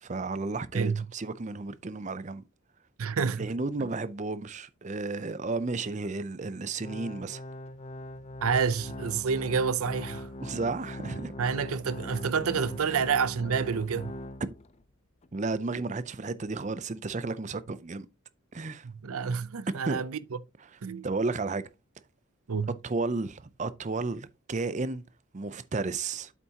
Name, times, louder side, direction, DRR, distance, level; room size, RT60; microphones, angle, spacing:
voice 1, 0.0-2.4 3.4-7.4 10.4-11.3 12.9-13.0 14.4-14.5 15.3-18.1 18.5-18.9 19.8-20.0 21.0-21.7 22.8-25.0 25.3-26.3, right 3 dB, 35° right, 0.5 m, -33 dB
voice 2, 0.7-1.1 3.0-3.5 8.4-10.3 11.4-14.1 18.8-20.2 20.8-21.1 22.5-22.7, right 6 dB, 75° right, 0.6 m, -28 dB
Organ, 6.8-14.8 15.2-15.3 16.0-16.1, left 1 dB, 30° left, 0.4 m, -41 dB
8.3 x 7.2 x 2.8 m
head